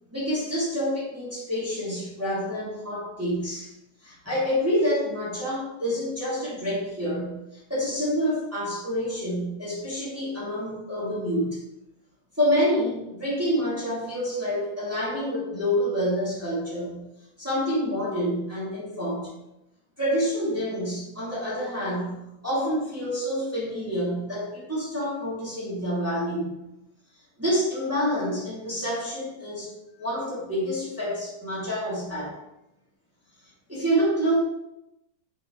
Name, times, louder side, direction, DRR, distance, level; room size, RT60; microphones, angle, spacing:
voice 1, 0.1-3.7 4.0-7.4 7.7-11.6 12.4-17.0 17.4-19.3 20.0-26.6 27.4-29.7 30.0-32.4 33.7-34.3, equal, 5° right, -7 dB, 1.9 m, -27 dB
6.8 x 5.9 x 3.8 m, 0.90 s
omnidirectional pair, 3.5 m